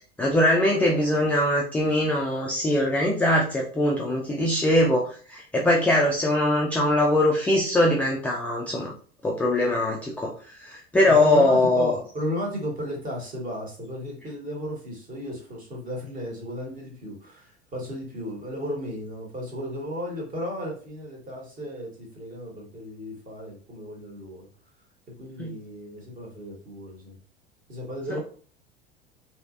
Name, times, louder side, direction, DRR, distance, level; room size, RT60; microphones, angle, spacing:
voice 1, 0.2-8.9 9.2-10.3 10.6-11.9 25.4-25.6, left 1 dB, 5° left, -2 dB, 0.3 m, -22 dB
voice 2, 11.1-24.4 25.2-27.2 27.7-28.2, equal, 25° right, -1 dB, 1.3 m, -34 dB
3.1 x 3.0 x 2.5 m, 0.43 s
figure-of-eight pair, 75°, 32 cm